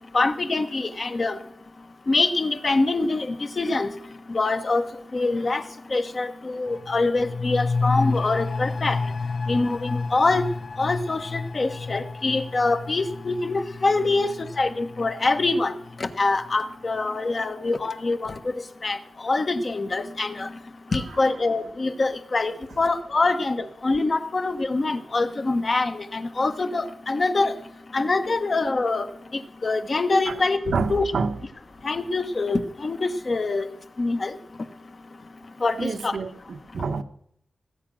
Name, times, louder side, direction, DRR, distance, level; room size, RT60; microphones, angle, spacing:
voice 1, 0.1-1.4 2.1-3.9 4.3-4.8 5.1-5.6 5.9-9.0 9.5-10.4 10.8-15.7 16.0-18.5 18.8-19.0 19.2-20.5 20.9-27.6 27.9-30.6 30.9-31.1 31.8-33.6 34.0-34.3 35.6-36.2, left 3 dB, 40° left, 1.2 m, -24 dB
sound 1, 6.7-16.1 16.4-16.5, left 4 dB, 65° left, 0.9 m, -30 dB
voice 2, 30.3-31.4 35.8-37.0, right 4 dB, 85° right, 1.0 m, -29 dB
19.0 x 9.0 x 6.2 m
wide cardioid pair, 165°, 0 cm